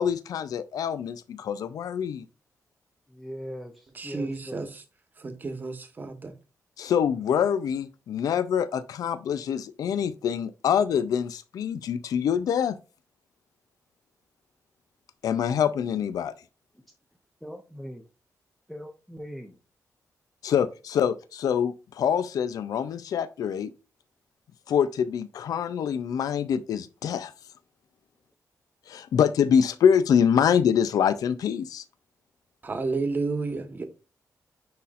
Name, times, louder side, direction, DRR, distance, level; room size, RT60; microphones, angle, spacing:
voice 1, 0.0-2.2 6.8-12.8 15.2-16.3 20.4-23.7 24.7-27.3 28.9-31.8, left 8 dB, 80° left, 0.5 m, -25 dB
voice 2, 3.1-4.7 17.4-18.0 18.7-19.6, equal, ahead, 0.7 m, -40 dB
voice 3, 3.9-4.7 5.2-6.3 32.6-33.8, right 3 dB, 30° right, 1.1 m, -31 dB
9.5 x 4.2 x 2.5 m
wide cardioid pair, 155°, 6 cm